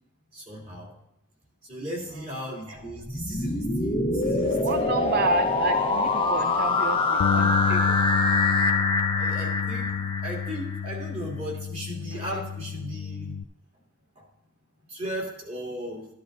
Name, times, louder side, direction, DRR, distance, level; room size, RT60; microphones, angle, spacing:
voice 1, 0.3-0.9 1.6-5.0 9.2-9.9 10.2-13.4 14.2-14.3 14.9-16.1, equal, 30° right, -3 dB, 2.8 m, -36 dB
sound 1, 2.9-10.8, left 3 dB, 25° left, 1.0 m, -25 dB
voice 2, 4.6-8.0, right 3 dB, 45° right, 8 dB, 0.5 m, -30 dB
Bass guitar, 7.2-13.4, left 7 dB, 85° left, 0.3 m, -29 dB
12.5 x 12.5 x 2.7 m, 0.77 s
head